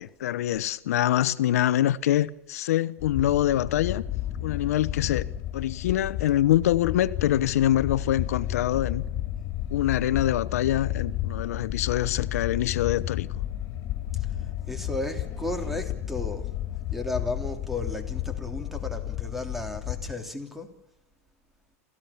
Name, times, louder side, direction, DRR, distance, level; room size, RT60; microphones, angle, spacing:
voice 1, 0.0-4.0 4.4-5.3 5.5-9.0 9.7-13.3, left 12 dB, 80° left, 0.9 m, -25 dB
sound 1, 3.0-20.1, left 12 dB, 45° left, 3.3 m, -32 dB
voice 2, 14.1-16.5 16.9-20.7, left 2 dB, 5° right, 3.1 m, -34 dB
27.5 x 15.5 x 7.1 m
hypercardioid pair, 115°, 8 cm